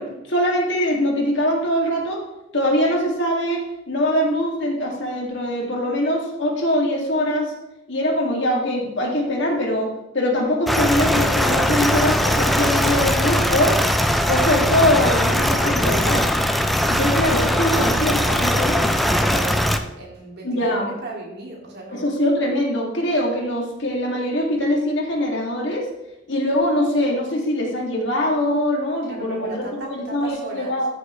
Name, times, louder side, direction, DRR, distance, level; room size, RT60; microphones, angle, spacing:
voice 1, 0.0-2.2 2.5-7.5 7.9-9.9 10.1-13.8 14.3-16.3 16.9-18.8 20.4-20.9 21.9-25.9 26.3-30.9, left 1 dB, 65° left, -1 dB, 2.3 m, -22 dB
sound 1, 10.7-19.8, equal, ahead, 0.5 m, -20 dB
voice 2, 17.4-22.1 29.1-30.8, right 2 dB, 55° right, -2 dB, 2.5 m, -36 dB
14.0 x 6.6 x 3.2 m, 0.89 s
head